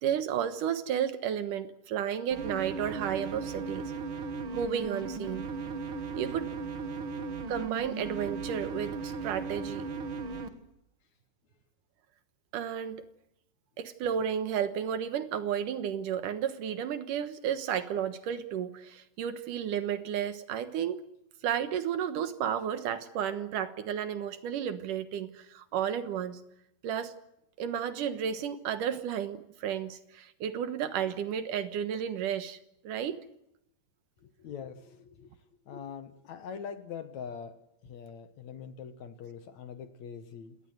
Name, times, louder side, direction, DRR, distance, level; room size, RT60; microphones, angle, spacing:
voice 1, 0.0-3.9 4.5-5.5 6.2-6.5 7.5-9.9 12.5-13.0 13.8-21.0 21.4-26.4 26.8-27.2 27.6-32.6 32.8-33.2, right 9 dB, 70° right, 11 dB, 2.7 m, -32 dB
sound 1, 2.3-10.5, right 4 dB, 45° right, 2.0 m, -37 dB
voice 2, 34.2-35.3 35.7-40.6, left 7 dB, 60° left, 10 dB, 2.4 m, -43 dB
28.5 x 18.5 x 8.0 m, 0.80 s
omnidirectional pair, 4.0 m